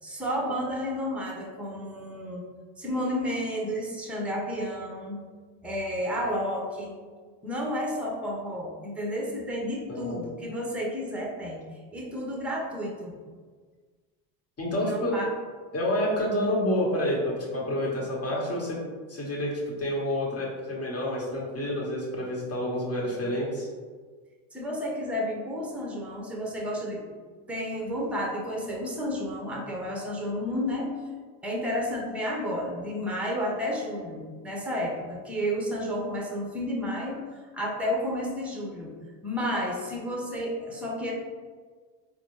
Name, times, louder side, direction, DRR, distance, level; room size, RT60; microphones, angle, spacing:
voice 1, 0.0-2.4 2.8-5.2 5.6-6.9 7.4-11.6 11.9-13.1 14.8-15.3 24.5-27.0 27.5-30.9 31.4-38.9 39.2-41.1, equal, 5° right, -1 dB, 0.7 m, -31 dB
voice 2, 9.9-10.2 14.6-15.2 15.7-18.8 19.1-23.7, left 1 dB, 30° left, -4 dB, 1.3 m, -28 dB
4.0 x 2.1 x 3.1 m, 1.5 s
hypercardioid pair, 80°, 49 cm